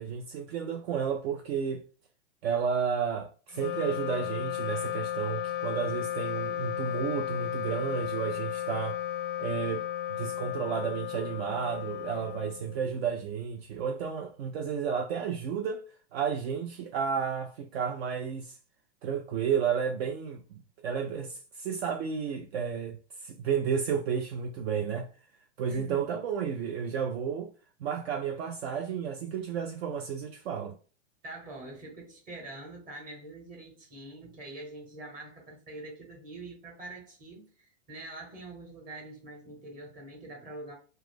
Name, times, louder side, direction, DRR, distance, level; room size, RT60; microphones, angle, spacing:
voice 1, 0.0-1.8 2.4-9.0 9.4-15.8 16.1-18.6 19.0-25.1 25.6-27.5 27.8-30.8, right 7 dB, 55° right, 0.4 m, -32 dB
Wind instrument woodwind instrument, 3.5-13.1, left 11 dB, 45° left, 0.4 m, -34 dB
voice 2, 25.7-26.1 31.2-40.8, right 2 dB, 20° right, 1.0 m, -45 dB
2.3 x 2.0 x 3.4 m
hypercardioid pair, 125°, 38 cm